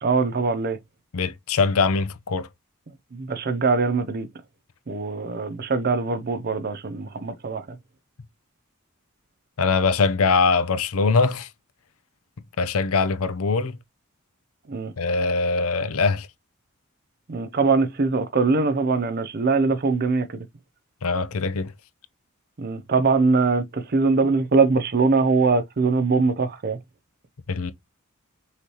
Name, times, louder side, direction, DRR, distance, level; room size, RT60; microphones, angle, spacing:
voice 1, 0.0-0.8 3.1-4.3 4.9-7.6 14.7-14.9 17.3-20.5 22.6-26.8, right 4 dB, 45° right, 0.6 m, -22 dB
voice 2, 1.1-2.5 9.6-11.5 12.6-13.8 15.0-16.3 21.0-21.7 27.5-27.7, left 4 dB, 75° left, 0.6 m, -22 dB
5.7 x 3.1 x 2.9 m
head